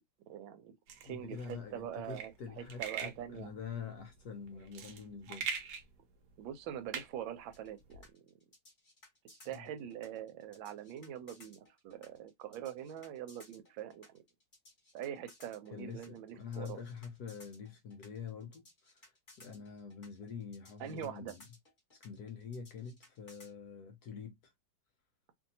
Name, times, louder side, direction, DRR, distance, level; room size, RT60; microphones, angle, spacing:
voice 1, 0.3-0.7 1.0-3.5 6.4-8.3 9.2-14.2 14.9-16.8 20.8-21.3, right 10 dB, 85° right, 1.3 m, -44 dB
sound 1, 0.9-8.1, right 6 dB, 70° right, 1.1 m, -44 dB
voice 2, 1.0-5.5 9.4-9.7 15.7-19.1 19.4-21.4 22.0-24.3, left 6 dB, 70° left, 0.9 m, -46 dB
sound 2, 7.5-23.5, left 2 dB, 30° left, 1.2 m, -60 dB
2.9 x 2.6 x 2.6 m
omnidirectional pair, 2.1 m